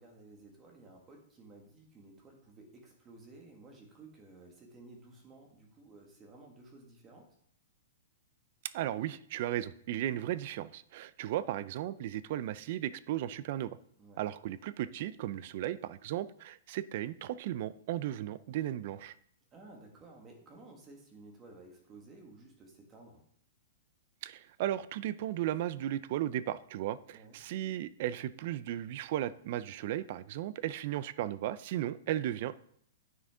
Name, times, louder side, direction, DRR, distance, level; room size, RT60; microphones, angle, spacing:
voice 1, 0.0-7.3 14.0-14.3 19.5-23.2 27.1-27.4, right 2 dB, 15° right, 1 dB, 1.6 m, -54 dB
voice 2, 8.7-13.8 14.2-19.1 24.2-32.6, right 12 dB, 45° right, 17 dB, 0.4 m, -35 dB
9.4 x 6.0 x 3.7 m, 0.66 s
hypercardioid pair, 165°, 0 cm